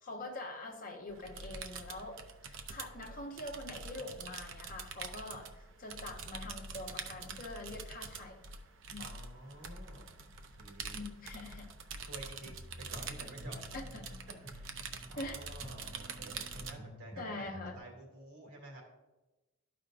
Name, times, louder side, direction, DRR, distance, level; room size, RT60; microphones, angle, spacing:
voice 1, 0.0-8.4 8.9-9.0 10.9-11.7 13.7-14.1 15.2-15.4 17.2-17.8, left 2 dB, 40° left, 2 dB, 1.0 m, -44 dB
sound 1, 1.1-16.7, right 4 dB, 60° right, 0.6 m, -45 dB
voice 2, 9.0-11.0 12.0-12.6 12.9-13.7 14.5-17.5 17.7-18.8, right 1 dB, 90° right, -1 dB, 2.6 m, -51 dB
sound 2, 12.4-17.8, equal, 5° left, 0.7 m, -51 dB
12.5 x 5.0 x 2.5 m, 1.1 s
head